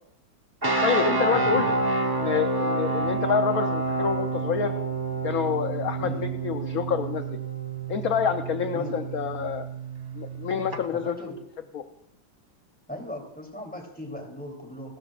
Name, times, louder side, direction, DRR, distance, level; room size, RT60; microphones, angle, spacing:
sound 1, 0.6-10.8, right 3 dB, 25° right, 0.4 m, -28 dB
voice 1, 0.8-1.7 2.0-4.7 5.2-7.4 7.9-9.7 10.1-11.1 11.7-11.8, left 7 dB, 60° left, 6 dB, 1.0 m, -27 dB
voice 2, 1.3-1.7 6.0-6.3 8.7-9.0 10.9-11.4 12.9-15.0, equal, 5° left, 1 dB, 3.1 m, -38 dB
30.0 x 13.0 x 2.5 m, 0.72 s
omnidirectional pair, 2.3 m